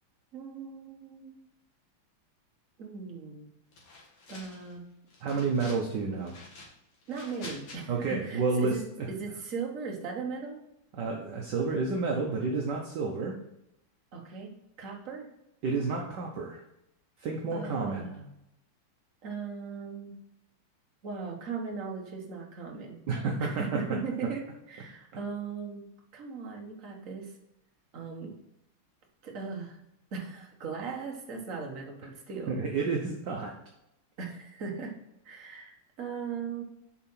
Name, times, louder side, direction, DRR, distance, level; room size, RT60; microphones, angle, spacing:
voice 1, 0.3-1.4 2.8-3.5 4.3-4.8 7.1-8.8 9.1-10.6 14.1-14.5 14.8-15.3 17.5-18.3 19.2-20.2 21.0-23.0 23.4-25.9 26.1-27.4 27.9-28.3 29.2-29.8 30.1-32.6 34.2-34.9 35.2-36.6, right 5 dB, 40° right, 1 dB, 1.6 m, -38 dB
sound 1, 3.7-4.7 5.1-5.9 6.2-7.8, left 2 dB, 80° left, 2.8 m, -48 dB
voice 2, 5.2-6.3 7.9-9.1 10.9-13.4 15.6-16.6 17.2-18.1 23.1-23.8 32.5-33.5, right 4 dB, 60° right, 0 dB, 1.4 m, -30 dB
7.2 x 5.1 x 5.6 m, 0.84 s
omnidirectional pair, 2.4 m